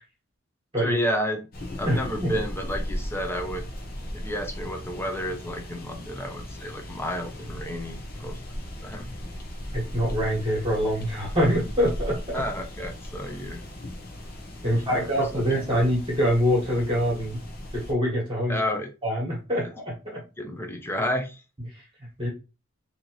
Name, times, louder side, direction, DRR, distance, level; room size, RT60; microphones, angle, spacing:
voice 1, 0.8-1.4 1.8-3.7 4.1-8.4 8.8-9.1 12.3-13.6 14.6-15.8 18.5-18.9 19.5-19.6 20.4-21.4, equal, 10° left, 4 dB, 0.6 m, -31 dB
sound 1, 1.5-17.9, equal, 45° left, 0.9 m, -37 dB
voice 2, 1.8-2.3 9.7-12.4 14.6-17.4 17.7-18.6 19.0-20.2 22.2-22.3, equal, 25° right, -4 dB, 1.4 m, -25 dB
4.2 x 2.8 x 3.0 m, 0.29 s
head